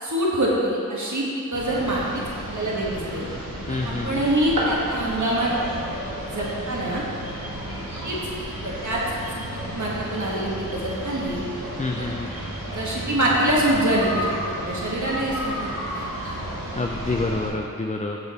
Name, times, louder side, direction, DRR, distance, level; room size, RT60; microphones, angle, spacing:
voice 1, 0.0-2.2 2.5-3.3 3.8-5.5 6.3-7.0 8.0-8.2 8.6-9.0 9.3-9.4 9.7-11.4 12.0-12.1 12.7-16.3, right 1 dB, 60° right, -5 dB, 1.6 m, -25 dB
sound 1, 1.5-17.5, right 1 dB, 85° right, 1.7 m, -32 dB
voice 2, 3.7-4.3 11.8-12.3 16.7-18.2, left 3 dB, 20° left, 1 dB, 0.4 m, -27 dB
6.8 x 6.7 x 4.3 m, 2.6 s
wide cardioid pair, 50°, 33 cm